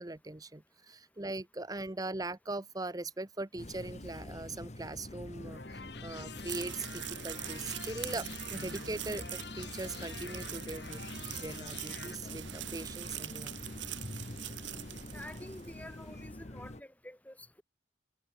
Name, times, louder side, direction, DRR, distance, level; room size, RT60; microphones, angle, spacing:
voice 1, 0.0-11.0 11.3-13.5, right 2 dB, 20° right, 0.9 m, -41 dB
sound 1, 3.6-16.8, left 1 dB, 35° left, 1.6 m, -45 dB
sound 2, 5.3-12.1, left 5 dB, 60° left, 2.2 m, -48 dB
sound 3, 6.3-15.8, right 13 dB, 75° right, 2.4 m, -43 dB
voice 2, 15.1-17.6, left 1 dB, 10° left, 2.7 m, -49 dB
head